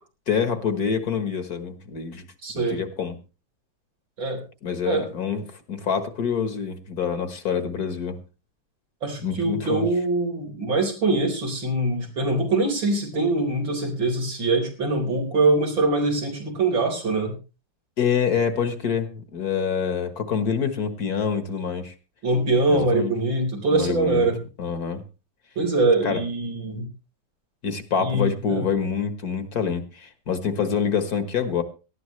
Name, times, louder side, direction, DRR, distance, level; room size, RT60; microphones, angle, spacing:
voice 1, 0.3-2.2 2.5-3.2 4.6-8.2 9.2-9.9 18.0-21.9 22.7-23.1 23.7-24.3 24.6-25.0 26.0-26.2 27.6-31.6, left 6 dB, 55° left, 10 dB, 1.8 m, -26 dB
voice 2, 2.4-2.8 4.2-4.4 4.8-5.0 9.0-17.3 22.2-24.4 25.6-26.8 28.0-28.6, right 2 dB, 85° right, 2 dB, 4.9 m, -23 dB
18.5 x 13.5 x 3.2 m, 0.32 s
omnidirectional pair, 2.1 m